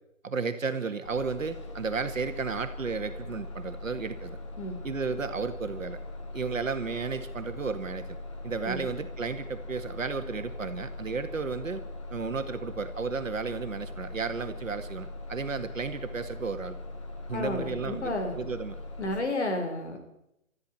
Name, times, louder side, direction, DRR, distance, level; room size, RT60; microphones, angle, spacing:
voice 1, 0.2-4.4 4.8-6.0 6.3-8.2 8.4-11.8 12.1-16.8 17.3-18.8, right 5 dB, 70° right, 8 dB, 2.1 m, -33 dB
Bus, 1.0-19.2, left 2 dB, 20° left, 1.5 m, -41 dB
voice 2, 17.3-18.3 19.0-20.1, left 2 dB, 55° left, 5 dB, 4.3 m, -32 dB
23.5 x 13.5 x 4.4 m, 0.81 s
hypercardioid pair, 165°, 41 cm